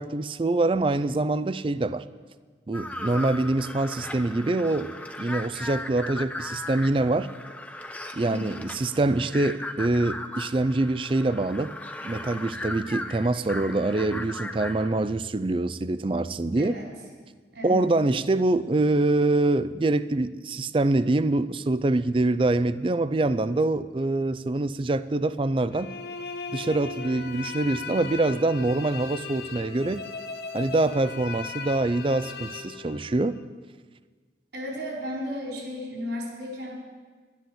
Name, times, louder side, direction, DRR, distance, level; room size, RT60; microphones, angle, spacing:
voice 1, 0.0-2.0 2.7-7.3 8.1-11.7 12.0-16.7 17.6-25.9 26.5-30.0 30.5-33.4, right 2 dB, 30° right, 14 dB, 0.4 m, -25 dB
sound 1, 2.7-15.0, left 1 dB, 10° left, 0.6 m, -37 dB
voice 2, 8.2-8.6 16.6-16.9 17.5-17.9 34.5-36.7, left 1 dB, 80° right, -2 dB, 4.5 m, -34 dB
sound 2, 25.7-33.4, left 5 dB, 60° left, 0.8 m, -38 dB
11.5 x 10.0 x 7.8 m, 1.5 s
head